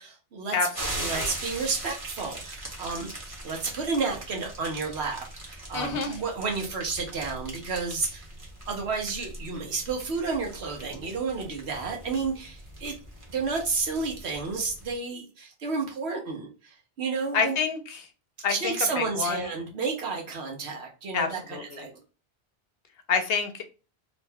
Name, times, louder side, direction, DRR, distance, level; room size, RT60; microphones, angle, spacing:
voice 1, 0.0-0.6 1.0-8.2 8.6-12.9 13.3-17.6 18.5-22.0, right 4 dB, 85° right, 1 dB, 1.2 m, -31 dB
voice 2, 0.5-1.3 5.7-6.2 17.3-18.1 18.4-19.5 21.1-21.9 23.1-23.6, left 5 dB, 70° left, 6 dB, 0.8 m, -28 dB
sound 1, 0.7-15.0, right 1 dB, 35° right, 1.0 m, -40 dB
3.1 x 2.2 x 3.4 m, 0.34 s
omnidirectional pair, 1.1 m